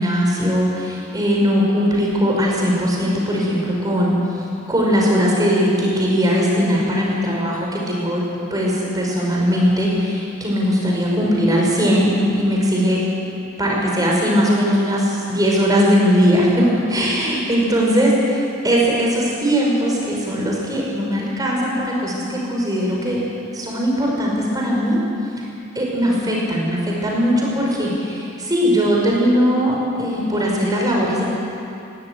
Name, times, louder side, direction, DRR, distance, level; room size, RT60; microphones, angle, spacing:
voice 1, 0.0-4.2 4.7-8.2 8.5-23.2 23.5-25.0 25.8-31.2, equal, 20° right, -3 dB, 5.4 m, -19 dB
17.5 x 17.5 x 9.6 m, 2.7 s
head